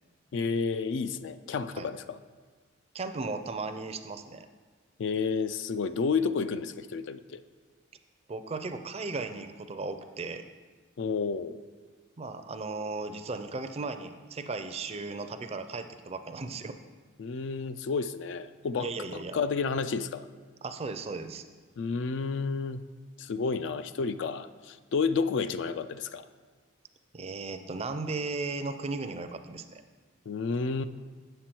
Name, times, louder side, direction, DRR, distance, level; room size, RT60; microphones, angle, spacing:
voice 1, 0.3-2.2 5.0-7.4 11.0-11.6 17.2-20.3 21.8-22.8 23.2-26.3 30.3-30.8, left 5 dB, 60° left, 12 dB, 0.3 m, -31 dB
voice 2, 2.9-4.5 8.3-10.5 12.2-16.8 18.8-19.4 20.6-21.4 27.1-29.8, right 3 dB, 30° right, 9 dB, 0.4 m, -36 dB
7.6 x 6.8 x 4.4 m, 1.4 s
head